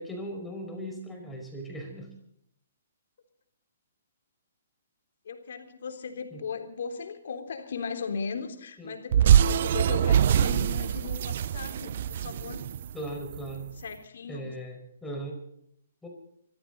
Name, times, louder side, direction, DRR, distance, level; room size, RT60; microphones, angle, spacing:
voice 1, 0.0-2.1 6.3-6.4 8.8-9.0 12.9-13.7 14.3-15.4 16.0-16.1, right 1 dB, 5° left, 1 dB, 5.3 m, -38 dB
voice 2, 5.2-12.7 13.8-14.6, left 5 dB, 70° left, 6 dB, 3.6 m, -37 dB
sound 1, 9.1-13.5, right 9 dB, 55° right, 0.6 m, -23 dB
24.5 x 14.5 x 4.0 m, 0.69 s
hypercardioid pair, 135°, 0 cm